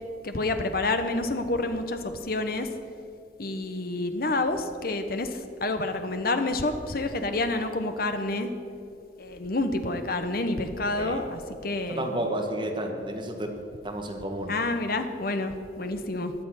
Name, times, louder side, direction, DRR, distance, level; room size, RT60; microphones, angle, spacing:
voice 1, 0.2-2.7 3.4-8.5 9.2-12.1 14.5-16.3, left 2 dB, 50° left, 8 dB, 1.1 m, -28 dB
voice 2, 11.9-13.5 13.8-14.6, right 1 dB, 25° right, 2 dB, 1.6 m, -31 dB
16.0 x 9.8 x 6.5 m, 2.6 s
head